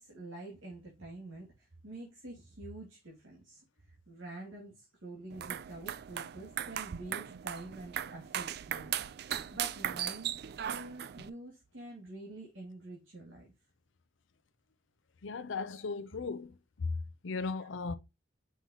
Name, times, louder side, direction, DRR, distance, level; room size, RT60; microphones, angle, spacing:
voice 1, 0.0-8.9 9.5-10.4 10.7-13.5 15.8-15.9 17.6-17.7, right 2 dB, 80° right, 2.2 m, -47 dB
sound 1, 5.3-11.3, right 10 dB, 55° right, 0.4 m, -38 dB
voice 2, 15.2-16.9 17.2-17.9, left 4 dB, 70° left, 0.6 m, -37 dB
6.1 x 5.6 x 2.8 m
head